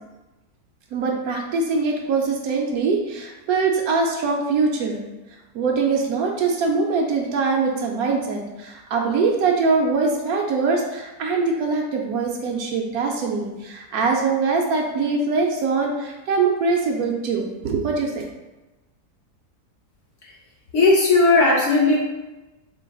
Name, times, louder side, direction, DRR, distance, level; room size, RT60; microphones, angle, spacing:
voice 1, 0.9-5.0 5.5-18.2, right 4 dB, 70° right, 1 dB, 1.0 m, -23 dB
voice 2, 20.7-22.0, left 3 dB, 60° left, -3 dB, 0.9 m, -16 dB
4.4 x 3.7 x 2.3 m, 1.1 s
omnidirectional pair, 1.7 m